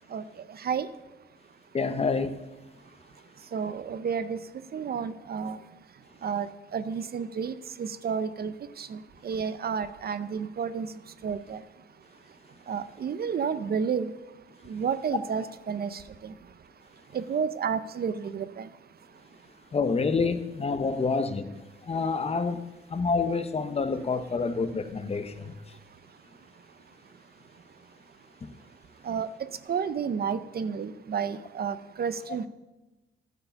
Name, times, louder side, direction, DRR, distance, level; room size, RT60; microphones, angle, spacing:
voice 1, 0.1-0.9 3.4-5.6 6.2-11.6 12.7-14.1 14.6-16.6 17.1-18.8 29.0-32.5, right 6 dB, 50° right, 0.5 m, -31 dB
voice 2, 1.7-2.4 19.7-21.5 21.8-22.6 22.9-25.5 28.4-28.5, left 4 dB, 30° left, 0.7 m, -28 dB
12.0 x 4.7 x 6.9 m
cardioid pair, 105°, 20 cm